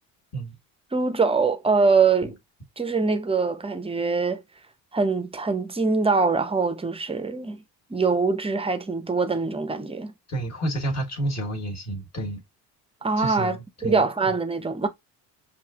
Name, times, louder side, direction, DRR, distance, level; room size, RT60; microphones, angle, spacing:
voice 1, 0.9-2.4 2.8-4.4 4.9-7.6 7.9-10.1 13.0-14.9, right 4 dB, 10° right, 0.6 m, -23 dB
voice 2, 10.3-12.4 13.2-13.6 13.8-14.0, right 1 dB, 30° left, 1.4 m, -29 dB
5.4 x 2.6 x 2.4 m
hypercardioid pair, 65°, 49 cm